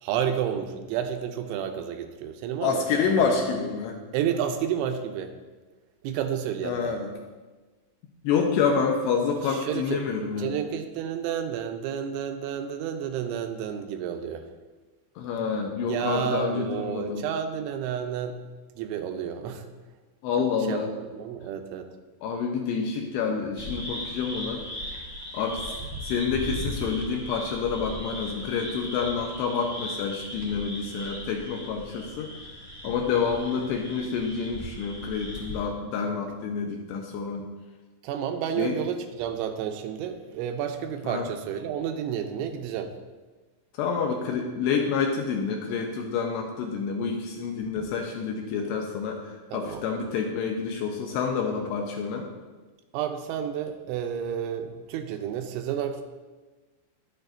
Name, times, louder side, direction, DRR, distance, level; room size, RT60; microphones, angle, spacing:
voice 1, 0.0-3.0 4.1-5.3 6.0-7.0 9.4-10.0 10.4-14.5 15.9-18.4 18.8-19.7 20.4-21.9 32.9-33.0 38.0-43.0 47.8-47.9 49.5-49.8 52.9-56.0, right 8 dB, 85° right, 6 dB, 3.0 m, -31 dB
voice 2, 2.6-4.0 6.6-7.1 8.2-10.5 15.2-17.2 20.2-20.9 22.2-24.6 25.3-25.7 26.0-32.3 32.8-37.4 38.6-38.7 41.0-41.3 43.8-52.3, left 5 dB, 80° left, 2 dB, 2.6 m, -28 dB
sound 1, 23.6-35.6, equal, 20° right, 1.1 m, -38 dB
11.0 x 8.8 x 2.6 m, 1.3 s
omnidirectional pair, 5.4 m